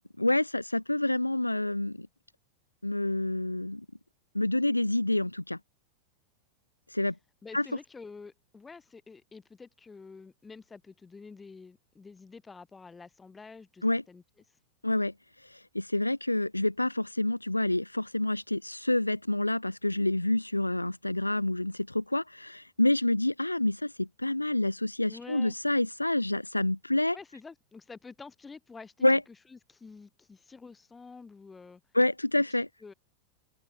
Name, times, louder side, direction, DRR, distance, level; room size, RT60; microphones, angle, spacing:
voice 1, 0.2-2.1 2.8-3.8 4.3-5.6 6.9-7.2 7.5-7.6 13.8-14.0 14.8-15.1 15.7-27.2 29.0-29.2 31.9-32.7, left 1 dB, 85° left, 1.7 m, -28 dB
voice 2, 7.4-14.2 25.1-25.5 27.1-31.8 32.8-32.9, left 4 dB, 15° left, 4.9 m, -48 dB
open air
figure-of-eight pair, 90°, 0 cm